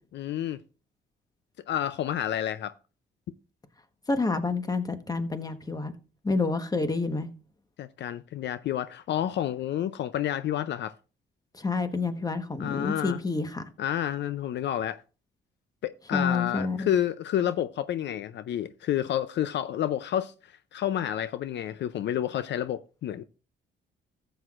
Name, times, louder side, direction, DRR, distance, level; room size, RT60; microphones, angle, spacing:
voice 1, 0.1-0.6 1.7-2.7 7.8-10.9 12.6-13.2 13.8-15.0 15.8-20.3 20.7-23.2, left 11 dB, 65° left, 0.5 m, -29 dB
voice 2, 4.1-5.9 6.2-7.3 11.5-13.6 16.1-16.9, left 3 dB, 20° left, 1.2 m, -28 dB
14.0 x 8.0 x 2.5 m
cardioid pair, 90°, 20 cm